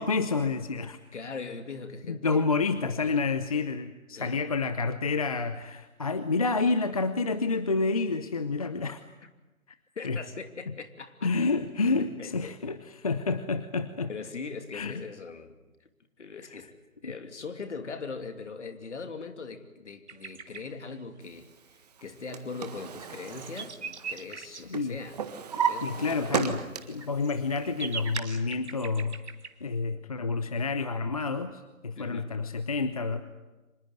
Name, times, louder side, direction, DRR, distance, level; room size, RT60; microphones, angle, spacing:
voice 1, 0.0-1.0 2.1-9.0 10.0-10.2 11.2-14.1 14.7-15.0 17.0-17.1 24.7-25.0 25.8-29.2 29.6-33.2, left 4 dB, 25° left, 12 dB, 0.8 m, -29 dB
voice 2, 1.1-2.4 4.1-4.4 10.0-11.3 12.0-12.6 14.1-15.9 16.2-16.7 17.0-23.8 24.1-25.2 25.6-26.2 32.0-32.3, left 4 dB, 55° left, 8 dB, 2.9 m, -40 dB
sound 1, 20.1-20.6 22.3-22.4 22.7-24.6 25.5-25.7 26.6-29.5, right 5 dB, 50° right, 2.6 m, -41 dB
Drawer open or close, 22.0-24.4 24.7-27.1 27.5-28.2, right 7 dB, 30° right, 1.6 m, -33 dB
25.5 x 20.5 x 9.3 m, 1.1 s
figure-of-eight pair, 155°, 42 cm